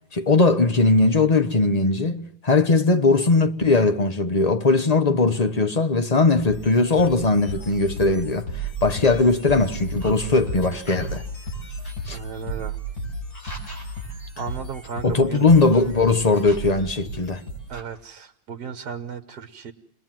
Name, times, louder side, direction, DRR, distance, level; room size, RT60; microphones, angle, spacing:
voice 1, 0.1-11.2 12.1-12.2 15.0-17.4, left 3 dB, 25° left, 0.9 m, -19 dB
sound 1, 6.4-17.8, right 2 dB, 50° left, 6.5 m, -34 dB
voice 2, 12.1-12.8 14.4-15.5 17.7-19.7, right 6 dB, 60° right, 1.6 m, -35 dB
29.0 x 20.5 x 7.5 m
omnidirectional pair, 2.1 m